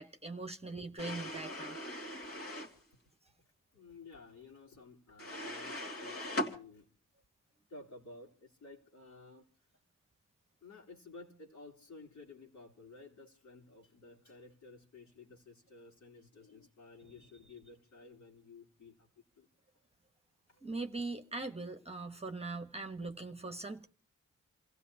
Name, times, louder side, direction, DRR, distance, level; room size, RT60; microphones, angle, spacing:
voice 1, 0.0-1.8 20.6-23.9, right 3 dB, 20° right, 6 dB, 1.2 m, -41 dB
sound 1, 1.0-2.8 5.2-6.5, left 1 dB, 45° left, 2.4 m, -39 dB
voice 2, 3.7-6.9 7.7-9.4 10.6-19.1 19.4-19.5 20.5-20.7, left 3 dB, 60° left, -1 dB, 3.5 m, -54 dB
29.0 x 15.5 x 2.9 m, 0.41 s
cardioid pair, 55°, 32 cm